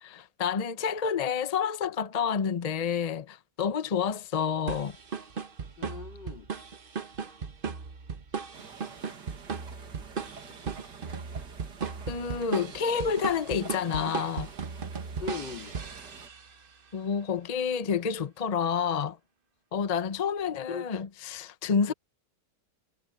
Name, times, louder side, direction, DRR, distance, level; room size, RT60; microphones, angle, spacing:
voice 1, 0.0-5.0 12.1-14.5 16.9-19.2 19.7-21.9, left 7 dB, 35° left, 0.7 m, -29 dB
sound 1, 4.7-16.6, right 5 dB, 35° right, 1.0 m, -37 dB
voice 2, 5.8-6.5 15.2-15.8 20.7-21.0 21.9-22.0, left 5 dB, 90° left, 3.4 m, -38 dB
sound 2, 8.5-16.3, right 5 dB, 75° right, 2.7 m, -49 dB
omnidirectional pair, 1.9 m